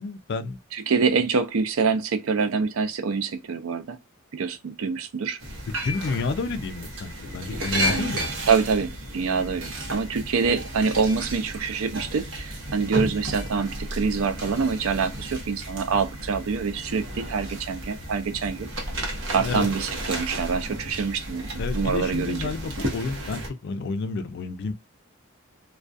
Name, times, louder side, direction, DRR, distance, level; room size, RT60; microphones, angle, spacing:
voice 1, 0.0-0.6 5.7-8.3 19.4-19.7 21.6-24.7, left 4 dB, 55° left, 0.3 m, -30 dB
voice 2, 0.7-4.0 4.3-5.4 7.9-8.1 8.5-18.7 19.3-22.5, right 5 dB, 85° right, 0.5 m, -25 dB
sound 1, 5.4-23.5, right 1 dB, 65° right, 0.8 m, -33 dB
2.3 x 2.2 x 2.5 m
head